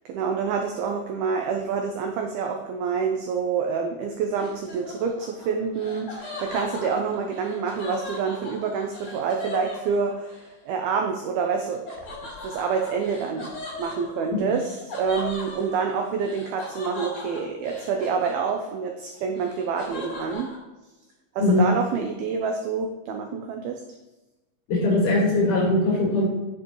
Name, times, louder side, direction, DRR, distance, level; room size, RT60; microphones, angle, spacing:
voice 1, 0.1-11.8 12.4-13.5 13.8-20.5 21.4-23.8, right 5 dB, 90° right, 3 dB, 2.1 m, -27 dB
Laughter, 4.4-10.4 11.9-18.8 19.1-20.6, left 3 dB, 30° left, 3.7 m, -38 dB
voice 2, 24.7-26.3, left 2 dB, 55° left, -2 dB, 2.9 m, -21 dB
9.7 x 7.5 x 3.1 m, 1.1 s
omnidirectional pair, 5.2 m